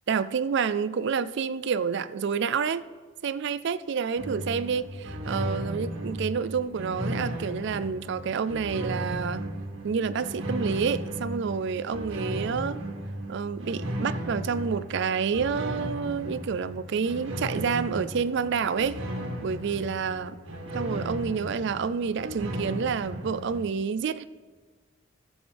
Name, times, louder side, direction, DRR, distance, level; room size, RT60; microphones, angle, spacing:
voice 1, 0.1-2.8 3.2-9.4 9.8-12.8 13.3-19.0 19.4-20.4 20.7-24.2, right 6 dB, 60° right, 15 dB, 0.4 m, -28 dB
sound 1, 4.2-23.6, right 1 dB, 75° right, 1.8 m, -35 dB
18.0 x 7.1 x 3.4 m, 1.4 s
head